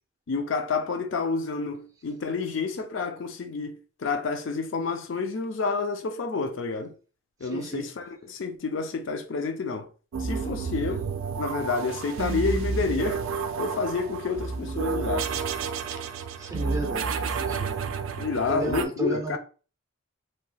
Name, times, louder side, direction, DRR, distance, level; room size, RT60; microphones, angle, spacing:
voice 1, 0.3-6.9 7.4-9.9 10.2-11.1 11.4-13.2 13.6-15.4 18.2-19.4, left 4 dB, 65° left, 0.4 m, -29 dB
voice 2, 7.5-7.9 16.4-17.8 18.5-19.4, right 2 dB, 15° right, 0.5 m, -33 dB
sound 1, 10.1-18.9, right 5 dB, 75° right, 0.3 m, -30 dB
3.2 x 2.8 x 2.2 m
head